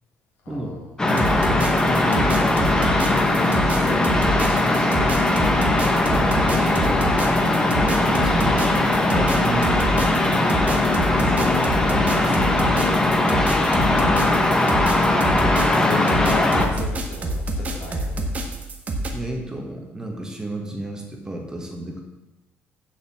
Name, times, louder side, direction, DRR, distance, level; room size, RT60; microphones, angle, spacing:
voice 1, 0.4-0.9 3.8-5.1 6.7-7.1 11.2-11.7 15.6-18.2, left 3 dB, 70° left, -1 dB, 3.1 m, -35 dB
sound 1, 1.0-16.7, left 2 dB, 15° left, 1.3 m, -20 dB
voice 2, 1.0-2.4 5.4-5.6 6.3-6.9 8.0-10.2 11.4-11.5 11.9-12.8 14.5-14.7 19.1-22.0, right 1 dB, 15° right, 2 dB, 1.8 m, -33 dB
sound 2, 1.1-19.1, right 1 dB, 35° right, 1.5 m, -27 dB
7.5 x 7.1 x 7.2 m, 0.99 s
cardioid pair, 115°, 4 cm